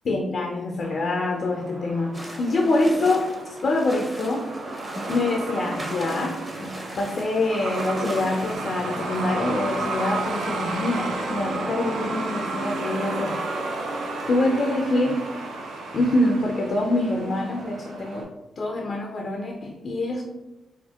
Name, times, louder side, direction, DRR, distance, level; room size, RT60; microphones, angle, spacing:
voice 1, 0.1-3.3 3.6-4.5 5.1-13.4 14.3-15.2 15.9-18.3 18.6-20.2, left 2 dB, 60° left, 1 dB, 0.3 m, -25 dB
Truck, 0.8-18.2, right 2 dB, 75° right, 0.4 m, -32 dB
sound 1, 2.1-8.6, right 1 dB, 30° right, 0.8 m, -38 dB
4.2 x 2.0 x 2.2 m, 1.0 s
hypercardioid pair, 40°, 0 cm